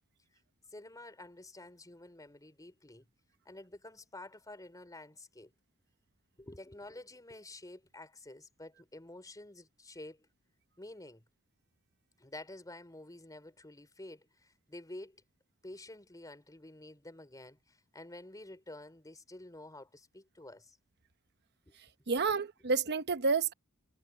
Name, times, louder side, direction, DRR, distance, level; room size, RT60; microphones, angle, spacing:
voice 1, 0.7-3.1 3.4-5.5 6.4-10.3 10.8-11.2 12.2-15.2 15.6-20.8 21.7-21.8 22.2-22.4, left 2 dB, 15° left, 4.0 m, -50 dB
voice 2, 22.1-23.5, right 4 dB, 50° right, 0.9 m, -29 dB
head